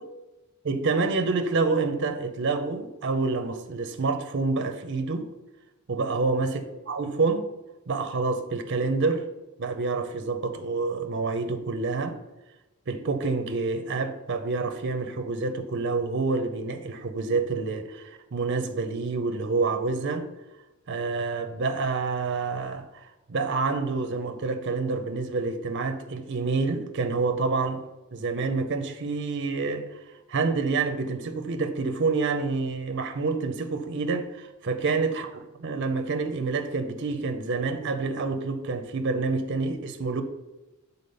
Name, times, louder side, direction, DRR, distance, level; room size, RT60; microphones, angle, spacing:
voice 1, 0.6-5.3 5.9-7.5 7.9-9.2 9.6-12.2 12.9-20.3 20.9-22.9 23.3-27.8 28.1-30.0 30.3-35.3 35.6-40.2, right 4 dB, 55° right, 0.6 m, -27 dB
6.8 x 4.0 x 5.4 m
head